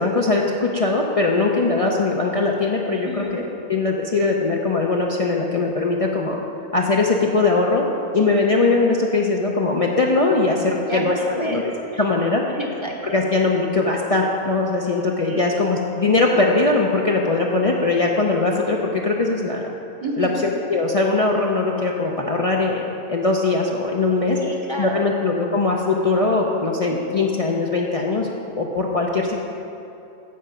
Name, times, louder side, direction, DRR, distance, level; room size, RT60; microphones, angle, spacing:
voice 1, 0.0-6.4 6.7-7.9 8.1-11.6 12.0-12.4 13.1-19.6 20.2-22.8 23.1-24.4 24.8-28.3 28.6-29.4, left 3 dB, 35° left, -2 dB, 0.6 m, -20 dB
voice 2, 3.0-3.4 10.7-12.0 12.5-13.3 15.2-15.5 20.0-20.4 24.3-25.2 26.6-27.0, right 1 dB, 25° right, -1 dB, 0.9 m, -31 dB
15.0 x 5.0 x 5.7 m, 2.8 s
omnidirectional pair, 1.2 m